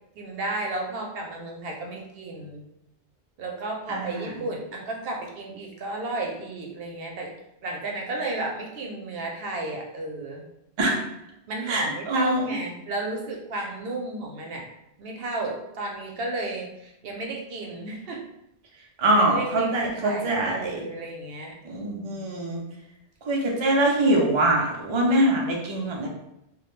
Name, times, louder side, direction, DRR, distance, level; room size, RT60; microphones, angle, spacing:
voice 1, 0.2-2.6 3.4-7.3 7.6-10.5 11.5-14.6 15.0-18.2 19.3-22.4, right 2 dB, 70° right, 0 dB, 0.7 m, -33 dB
voice 2, 3.9-4.3 10.8-11.0 11.7-12.4 19.0-20.8 21.6-22.6 23.2-26.1, right 1 dB, 50° right, -1 dB, 0.3 m, -23 dB
2.2 x 2.1 x 3.0 m, 0.83 s
omnidirectional pair, 1.1 m